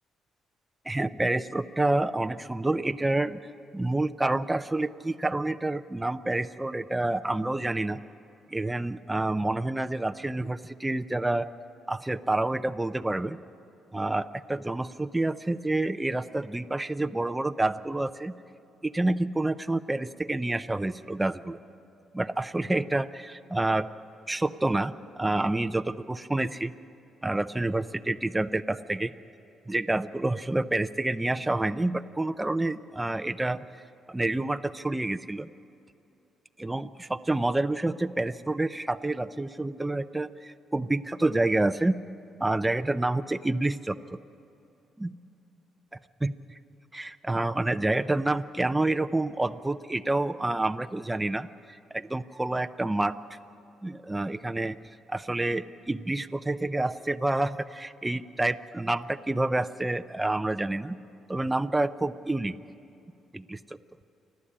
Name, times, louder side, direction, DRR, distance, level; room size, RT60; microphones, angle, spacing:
voice 1, 0.9-3.4 3.7-8.0 8.5-11.5 11.9-13.4 13.9-18.3 18.8-21.6 22.1-23.9 24.3-26.7 27.2-29.1 29.7-33.6 34.1-35.5 36.6-42.0 42.4-44.0 45.0-45.1 46.2-46.3 46.9-53.2 53.8-54.8 55.1-61.0 61.3-62.6 63.3-63.8, right 2 dB, 10° right, 9 dB, 0.6 m, -28 dB
30.0 x 11.5 x 8.7 m, 2.8 s
cardioid pair, 90°, 0 cm